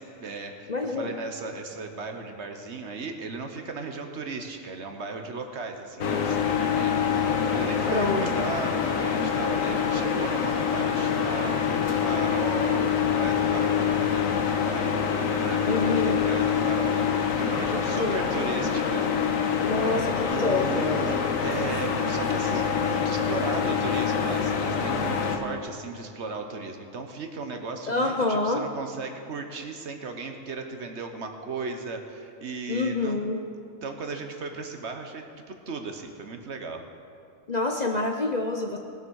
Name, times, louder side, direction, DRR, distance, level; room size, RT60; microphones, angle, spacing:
voice 1, 0.0-11.7 12.0-19.1 20.3-33.2 33.5-36.8, right 4 dB, 60° right, 5 dB, 1.3 m, -36 dB
voice 2, 0.7-1.1 7.9-8.5 15.6-16.4 17.7-18.3 19.6-21.1 27.9-28.6 32.7-33.4 37.5-38.8, left 3 dB, 40° left, 2 dB, 0.7 m, -27 dB
sound 1, 6.0-25.4, left 7 dB, 80° left, 1.4 m, -25 dB
18.5 x 7.1 x 6.3 m, 2.5 s
omnidirectional pair, 1.4 m